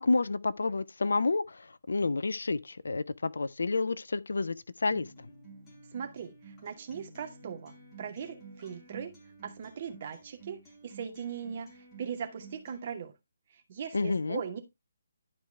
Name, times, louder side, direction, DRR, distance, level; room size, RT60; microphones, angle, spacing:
voice 1, 0.0-5.1 13.9-14.4, left 3 dB, 60° left, 0.6 m, -29 dB
Acoustic guitar, 4.9-12.9, right 3 dB, 15° left, 4.0 m, -52 dB
voice 2, 5.9-9.1 9.4-10.6 10.8-13.1 13.5-14.6, right 7 dB, 35° right, 2.2 m, -39 dB
12.0 x 4.8 x 4.5 m
figure-of-eight pair, 145°, 0 cm